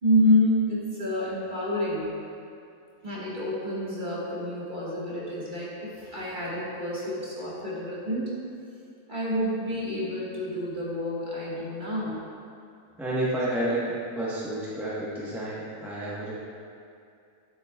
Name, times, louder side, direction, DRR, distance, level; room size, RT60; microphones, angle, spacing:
voice 1, 0.0-2.2 3.0-8.4 9.1-12.2, left 1 dB, 30° right, -8 dB, 1.8 m, -28 dB
voice 2, 13.0-16.4, right 1 dB, ahead, -8 dB, 0.9 m, -30 dB
9.8 x 7.8 x 2.3 m, 2.5 s
omnidirectional pair, 1.6 m